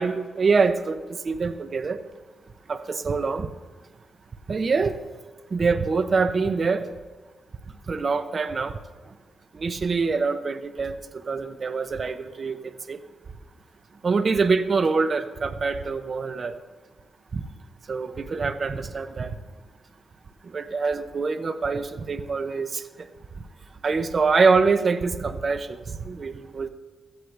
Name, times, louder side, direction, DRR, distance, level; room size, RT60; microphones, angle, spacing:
voice 1, 0.0-2.0 2.7-3.5 4.5-5.0 5.5-6.8 7.9-8.8 9.5-11.0 11.3-12.6 12.9-13.0 14.0-16.5 17.3-17.4 17.9-19.3 20.5-22.8 23.8-26.7, right 4 dB, 40° right, 10 dB, 0.7 m, -24 dB
16.5 x 13.0 x 3.3 m, 1.3 s
cardioid pair, 110°, 0 cm